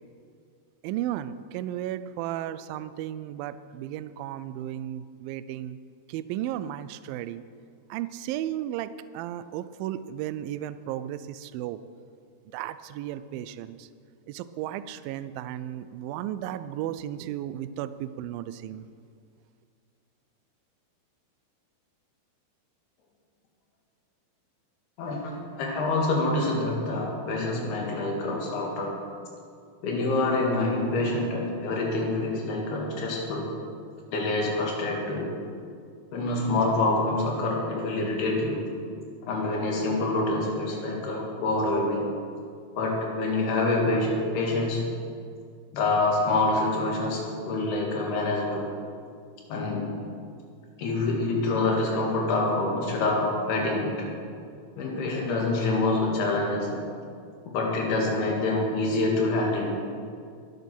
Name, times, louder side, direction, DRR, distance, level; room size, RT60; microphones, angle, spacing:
voice 1, 0.8-5.8 6.1-7.4 7.9-11.8 12.5-13.9 14.3-18.8, right 12 dB, 85° right, 13 dB, 2.0 m, -34 dB
voice 2, 25.0-28.9 29.8-33.5 34.1-35.3 36.1-38.6 39.3-42.1 42.8-44.9 45.7-48.6 49.5-49.9 50.8-54.1 54.8-56.8 57.5-59.8, left 2 dB, 75° left, -1 dB, 4.0 m, -26 dB
22.0 x 8.3 x 6.2 m, 2.3 s
omnidirectional pair, 4.7 m